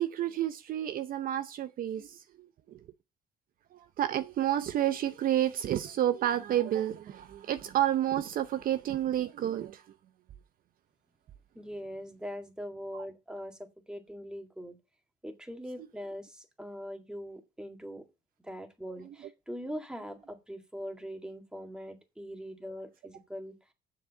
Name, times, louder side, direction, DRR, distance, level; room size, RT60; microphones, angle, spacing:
voice 1, 0.0-2.8 3.7-9.8, right 12 dB, 55° right, 0.7 m, -30 dB
voice 2, 11.6-14.8 15.2-18.1 18.4-23.7, equal, 5° right, 1.9 m, -42 dB
7.8 x 6.1 x 7.2 m
cardioid pair, 110°, 17 cm